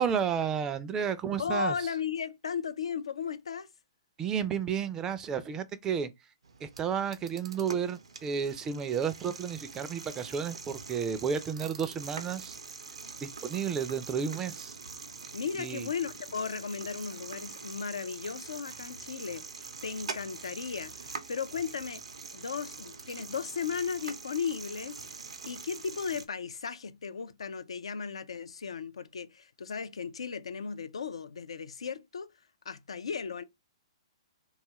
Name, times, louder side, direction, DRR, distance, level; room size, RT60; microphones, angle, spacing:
voice 1, 0.0-1.8 4.2-6.1 6.6-12.5 13.2-14.7 15.6-15.9, right 7 dB, 20° right, 0.3 m, -32 dB
voice 2, 1.4-3.7 15.3-22.0 22.3-25.0 25.5-32.3 32.7-33.4, left 6 dB, 80° left, 0.3 m, -36 dB
sound 1, 6.4-26.3, right 5 dB, 80° right, 0.5 m, -44 dB
2.7 x 2.3 x 2.9 m
hypercardioid pair, 130°, 3 cm